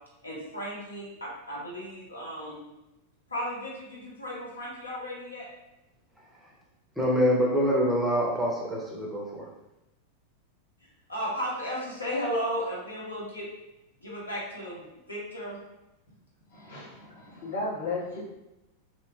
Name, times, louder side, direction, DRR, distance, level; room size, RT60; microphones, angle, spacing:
voice 1, 0.2-2.6 3.3-5.5 11.1-13.5 14.0-15.6, equal, 80° left, -5 dB, 0.8 m, -34 dB
voice 2, 7.0-9.5, equal, 5° right, -3 dB, 0.6 m, -25 dB
voice 3, 16.5-18.2, left 2 dB, 60° left, -7 dB, 1.2 m, -34 dB
3.0 x 2.5 x 2.2 m, 0.93 s
figure-of-eight pair, 90°, 0 cm